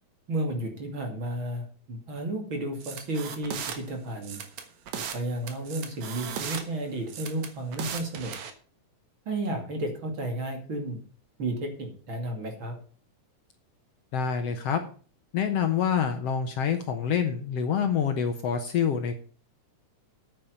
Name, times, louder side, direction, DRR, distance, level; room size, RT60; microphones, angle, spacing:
voice 1, 0.3-4.4 5.0-8.3 9.3-11.0 11.4-12.7, right 1 dB, 45° right, 3 dB, 2.9 m, -32 dB
sound 1, 2.8-3.8 4.2-5.2 5.5-6.6 7.1-8.5, right 7 dB, 65° right, 2.6 m, -36 dB
voice 2, 14.1-14.8 15.3-19.2, left 7 dB, 65° left, 7 dB, 1.9 m, -26 dB
9.3 x 8.7 x 6.7 m, 0.40 s
omnidirectional pair, 3.5 m